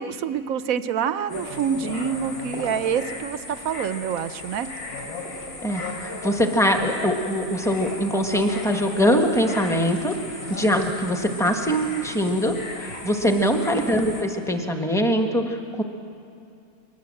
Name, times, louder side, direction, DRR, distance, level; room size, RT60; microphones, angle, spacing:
voice 1, 0.0-4.7 13.2-13.6, right 7 dB, 65° right, 12 dB, 1.1 m, -27 dB
sound 1, 1.3-14.2, left 2 dB, 70° left, 3.5 m, -36 dB
voice 2, 5.6-10.1 10.5-12.5 12.8-15.8, equal, ahead, 4 dB, 1.3 m, -22 dB
22.5 x 19.0 x 7.7 m, 2.5 s
omnidirectional pair, 1.7 m